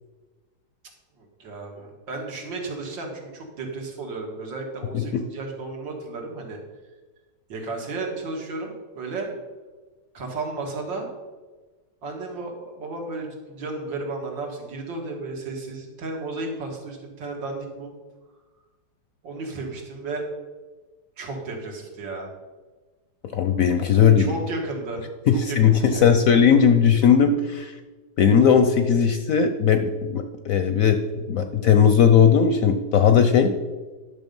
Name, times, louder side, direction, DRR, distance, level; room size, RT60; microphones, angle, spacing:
voice 1, 1.2-6.6 7.5-9.3 10.1-11.1 12.0-17.9 19.2-20.2 21.2-22.3 23.9-25.0 25.3-26.2, right 3 dB, 90° right, 1 dB, 2.5 m, -33 dB
voice 2, 23.3-24.3 25.3-27.7 28.2-31.0 31.3-33.5, left 7 dB, 70° left, 7 dB, 0.8 m, -18 dB
10.5 x 6.2 x 5.3 m, 1.3 s
omnidirectional pair, 2.0 m